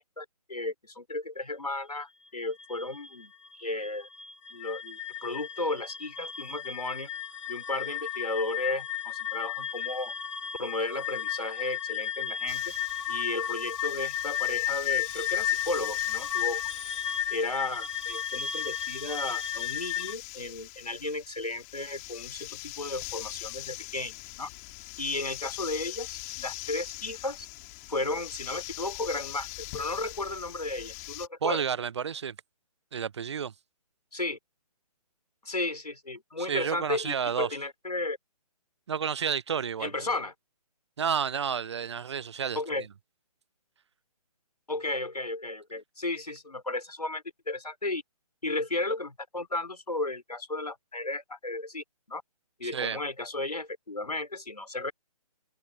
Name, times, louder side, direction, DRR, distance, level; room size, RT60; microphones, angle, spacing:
voice 1, 0.0-3.3 3.6-4.1 4.5-7.1 7.5-10.1 10.6-12.7 13.1-16.6 17.3-24.5 25.0-27.5 27.9-29.5 29.7-31.6 34.1-34.4 35.4-38.2 39.8-40.3 42.5-42.9 44.7-48.0 48.4-52.2 52.6-54.9, left 2 dB, 80° left, 4.7 m, -34 dB
sound 1, 2.3-20.1, left 9 dB, 50° left, 2.1 m, -34 dB
sound 2, 12.5-31.3, left 26 dB, 25° left, 3.5 m, -43 dB
voice 2, 31.4-32.4 32.9-33.5 36.4-37.5 38.9-39.9 41.0-42.6 52.7-53.0, right 7 dB, 45° right, 0.5 m, -30 dB
figure-of-eight pair, 140°, 20 cm